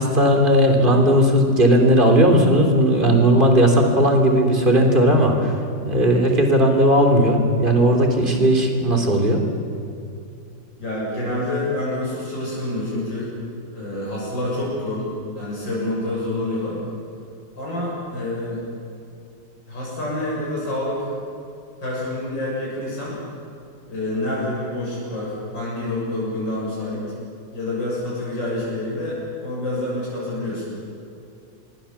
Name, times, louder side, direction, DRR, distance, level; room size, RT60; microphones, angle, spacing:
voice 1, 0.0-5.5 5.8-9.4, equal, 25° right, 3 dB, 3.4 m, -16 dB
voice 2, 10.8-13.4 13.7-16.8 17.5-18.6 19.7-21.1 21.8-23.2 23.9-27.0 27.5-30.8, left 1 dB, 75° left, -6 dB, 7.9 m, -27 dB
26.5 x 22.5 x 7.2 m, 2.6 s
omnidirectional pair, 2.0 m